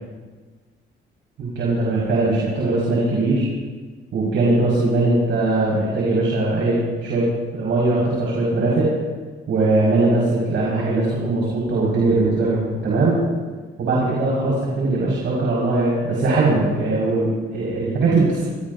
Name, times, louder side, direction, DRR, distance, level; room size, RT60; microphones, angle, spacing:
voice 1, 1.4-3.5 4.1-7.2 7.5-8.9 9.5-13.2 13.8-18.4, right 2 dB, 70° right, -6 dB, 6.1 m, -20 dB
28.0 x 16.5 x 2.9 m, 1.4 s
cardioid pair, 90°, 20 cm